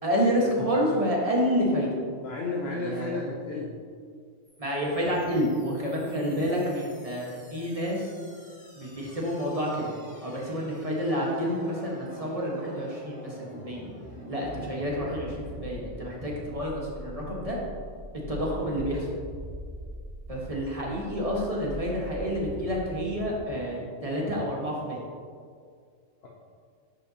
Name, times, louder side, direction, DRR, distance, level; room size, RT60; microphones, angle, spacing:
voice 1, 0.0-1.9 2.8-3.2 4.6-8.1 8.7-9.9 10.2-13.8 14.3-17.6 18.3-19.1 20.3-25.0, equal, 30° right, -3 dB, 1.5 m, -29 dB
voice 2, 2.2-3.8 26.2-26.3, left 2 dB, 60° left, -3 dB, 1.1 m, -32 dB
sound 1, 4.4-23.4, equal, 5° left, 1.5 m, -44 dB
10.0 x 7.2 x 2.8 m, 2.1 s
omnidirectional pair, 1.3 m